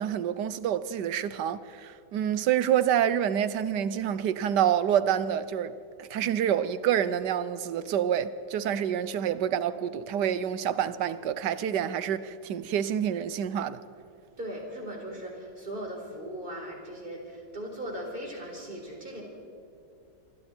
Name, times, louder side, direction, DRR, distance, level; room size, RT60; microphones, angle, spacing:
voice 1, 0.0-5.7 6.0-13.8, right 9 dB, 75° right, 1.4 m, -27 dB
voice 2, 14.4-19.2, right 1 dB, 30° right, 4.5 m, -38 dB
27.5 x 24.0 x 4.5 m
omnidirectional pair, 1.9 m